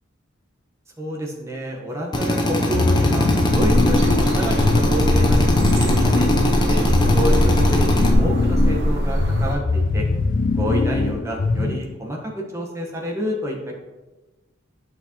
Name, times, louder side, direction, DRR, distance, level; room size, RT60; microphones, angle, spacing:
voice 1, 1.0-6.3 6.6-10.1 10.5-13.7, equal, 15° right, -1 dB, 1.2 m, -29 dB
Drill, 2.1-8.1, left 1 dB, 20° left, 0.8 m, -21 dB
sound 1, 2.7-12.0, left 3 dB, 40° left, 0.3 m, -22 dB
sound 2, 3.5-9.5, equal, 60° right, 2.4 m, -22 dB
10.0 x 6.1 x 3.0 m, 1.1 s
head